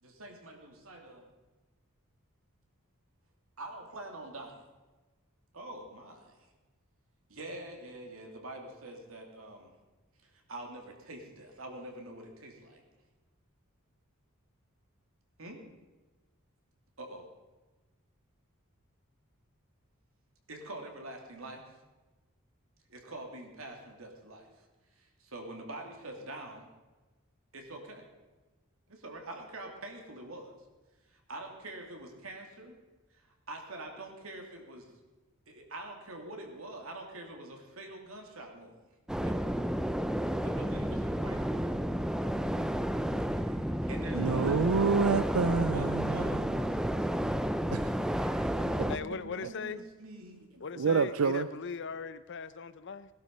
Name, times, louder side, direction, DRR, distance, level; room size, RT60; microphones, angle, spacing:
voice 1, 0.0-1.3 3.6-4.7 5.5-6.5 7.3-9.7 10.2-12.8 15.4-15.6 17.0-17.3 20.5-21.6 22.9-24.6 24.9-26.7 27.5-28.0 28.9-30.5 31.1-32.8 33.1-34.9 35.5-38.8 39.2-39.8 40.4-42.6 43.0-44.6 45.6-47.9 48.6-50.9, right 2 dB, 70° right, 2.9 m, -45 dB
sound 1, 39.1-49.0, equal, 5° right, 0.5 m, -31 dB
voice 2, 44.1-46.2 47.7-48.5 50.8-51.5, right 5 dB, 90° right, 0.5 m, -28 dB
voice 3, 48.9-49.9 50.6-53.1, left 5 dB, 60° left, 0.7 m, -39 dB
18.0 x 12.0 x 5.4 m
head